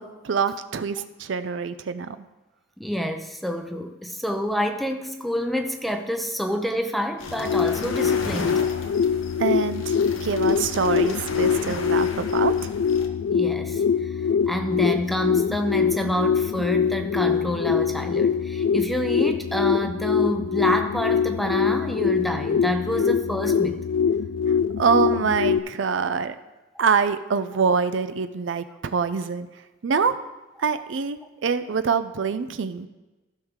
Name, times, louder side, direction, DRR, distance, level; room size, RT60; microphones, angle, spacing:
voice 1, 0.2-2.2 9.4-10.0 10.2-12.7 24.8-26.4 26.8-29.5 29.8-30.1 30.6-32.9, right 5 dB, 65° right, 11 dB, 0.5 m, -25 dB
voice 2, 2.8-8.6 13.3-14.1 14.5-23.8 25.1-25.2, equal, ahead, 6 dB, 0.7 m, -28 dB
sound 1, 7.2-13.1, left 3 dB, 90° left, 1.0 m, -36 dB
sound 2, 7.2-25.6, left 7 dB, 65° left, 0.3 m, -23 dB
15.0 x 6.3 x 3.7 m, 1.1 s
head